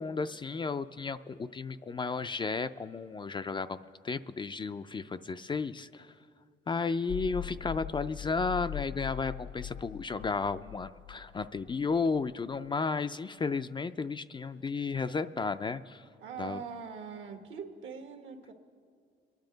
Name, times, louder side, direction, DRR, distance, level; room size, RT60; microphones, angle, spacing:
voice 1, 0.0-6.1 6.7-16.0 16.4-16.6, left 4 dB, 25° left, 11 dB, 0.3 m, -33 dB
sound 1, 7.1-12.5, left 12 dB, 65° left, 0.7 m, -41 dB
voice 2, 16.2-18.5, right 6 dB, 75° right, 5 dB, 1.3 m, -42 dB
23.0 x 10.5 x 3.9 m, 2.3 s
cardioid pair, 90°, 20 cm